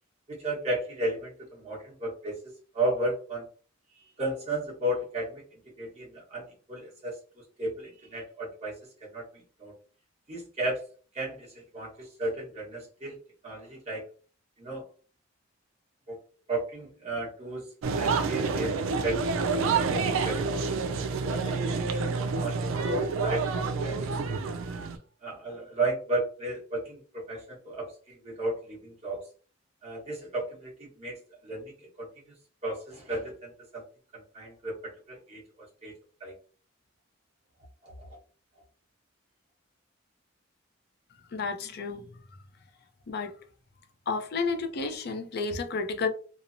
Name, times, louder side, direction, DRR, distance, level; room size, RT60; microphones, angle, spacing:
voice 1, 0.3-3.5 3.9-9.7 10.3-10.9 11.1-13.2 13.4-14.1 14.6-14.8 16.1-16.2 16.5-19.6 19.9-20.8 21.2-24.2 25.2-29.2 29.8-32.3 32.6-33.8 34.1-35.9 36.2-36.3 37.8-38.2, right 1 dB, 35° right, 1.2 m, -34 dB
sound 1, 17.8-25.0, right 4 dB, 80° right, 0.3 m, -28 dB
voice 2, 41.3-42.2 43.1-43.3 44.1-46.1, left 4 dB, 50° left, 0.4 m, -31 dB
2.9 x 2.0 x 2.5 m
head